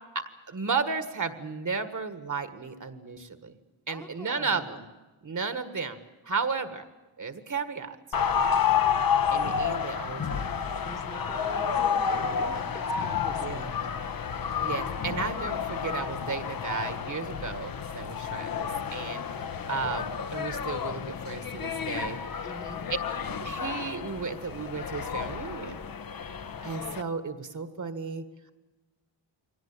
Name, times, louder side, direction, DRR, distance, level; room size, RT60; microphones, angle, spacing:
voice 1, 0.5-3.5 3.9-4.8 5.2-6.0 6.2-6.8 7.2-8.0 9.3-10.6 13.4-13.7 14.6-19.2 19.7-22.2 23.4-25.8 26.6-28.2, right 5 dB, 40° right, 10 dB, 1.7 m, -34 dB
voice 2, 3.9-4.7 10.8-13.7 22.4-22.8, equal, 10° left, 3 dB, 1.3 m, -44 dB
sound 1, 8.1-27.0, left 7 dB, 50° left, 1.0 m, -30 dB
23.5 x 18.5 x 8.9 m, 1.1 s
wide cardioid pair, 140°, 46 cm